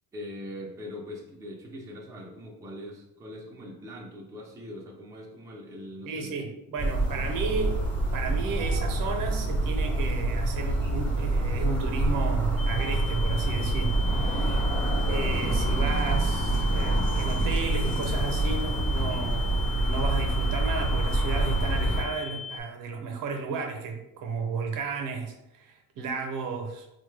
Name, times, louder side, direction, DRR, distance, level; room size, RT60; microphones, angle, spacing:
voice 1, 0.1-6.4, left 1 dB, 10° right, -2 dB, 0.5 m, -42 dB
voice 2, 6.0-7.8 8.1-14.6 15.1-26.9, right 4 dB, 70° right, 4 dB, 0.7 m, -33 dB
sound 1, 6.8-22.0, right 2 dB, 30° left, 1.1 m, -26 dB
sound 2, 12.6-22.6, left 6 dB, 70° left, 0.6 m, -39 dB
4.1 x 2.2 x 3.2 m, 0.87 s
cardioid pair, 160°, 34 cm